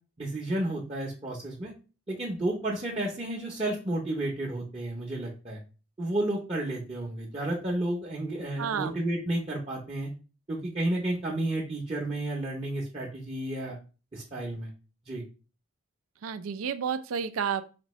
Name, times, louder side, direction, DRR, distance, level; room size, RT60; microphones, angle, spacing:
voice 1, 0.2-1.7 2.1-5.6 6.0-10.1 10.5-13.8 14.1-14.7 15.1-15.2, right 1 dB, 25° right, -3 dB, 0.7 m, -31 dB
voice 2, 8.6-9.0 16.2-17.6, right 7 dB, 90° right, 11 dB, 0.4 m, -31 dB
5.1 x 2.7 x 3.0 m, 0.34 s
head